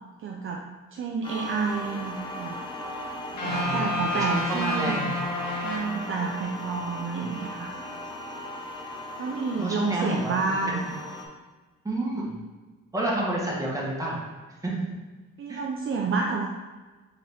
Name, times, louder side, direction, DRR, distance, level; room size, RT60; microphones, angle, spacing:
voice 1, 0.2-0.6 0.9-2.6 3.3-5.0 5.6-7.7 9.2-10.9 15.4-16.5, right 4 dB, 45° right, 0 dB, 0.5 m, -30 dB
sound 1, 1.2-11.3, left 1 dB, 15° left, 0.8 m, -37 dB
sound 2, 3.4-6.6, left 1 dB, 65° left, 1.0 m, -30 dB
voice 2, 3.5-5.1 9.6-10.8 11.8-12.4 12.9-14.2 14.6-14.8 15.5-15.6, right 2 dB, 10° right, -4 dB, 1.4 m, -30 dB
3.9 x 3.9 x 3.4 m, 1.3 s
cardioid pair, 90°, 30 cm